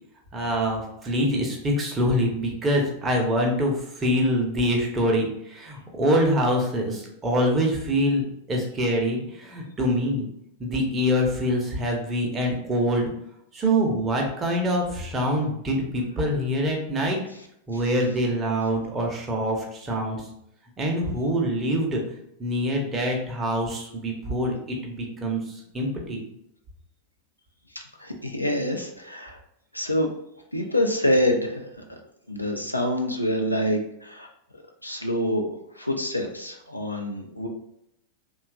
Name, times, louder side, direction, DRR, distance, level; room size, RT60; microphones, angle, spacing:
voice 1, 0.3-10.3 10.6-13.1 13.5-17.2 17.7-20.2 20.8-22.0 22.4-24.6 24.8-25.4 25.7-26.2, equal, 20° right, 0 dB, 0.7 m, -25 dB
voice 2, 28.0-29.4 29.7-30.1 30.5-31.6 32.3-34.3 34.8-35.5 35.8-37.5, left 1 dB, 85° left, 2 dB, 0.4 m, -26 dB
2.8 x 2.3 x 2.4 m, 0.76 s
figure-of-eight pair, 90°, 0 cm